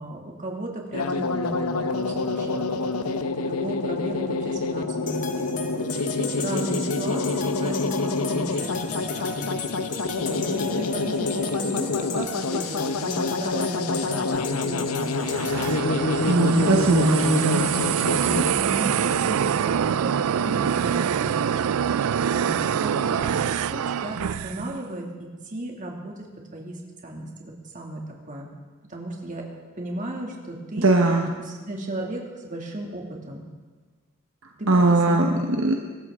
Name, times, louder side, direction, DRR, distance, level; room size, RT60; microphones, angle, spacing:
voice 1, 0.0-2.8 3.4-16.0 16.4-17.2 17.9-26.3 26.5-28.0 28.3-28.5 28.9-29.4 29.8-30.9 31.4-33.4 34.6-35.5, right 1 dB, 35° right, 0 dB, 2.4 m, -35 dB
sound 1, 0.9-18.5, left 3 dB, 80° left, 0.9 m, -27 dB
sound 2, 5.1-15.8, left 4 dB, 35° left, 1.2 m, -36 dB
sound 3, 15.0-24.8, right 8 dB, 80° right, 0.4 m, -25 dB
voice 2, 16.3-17.8 30.8-31.3 34.7-35.8, right 2 dB, 60° right, 2 dB, 1.1 m, -20 dB
24.0 x 13.5 x 3.7 m, 1.4 s
head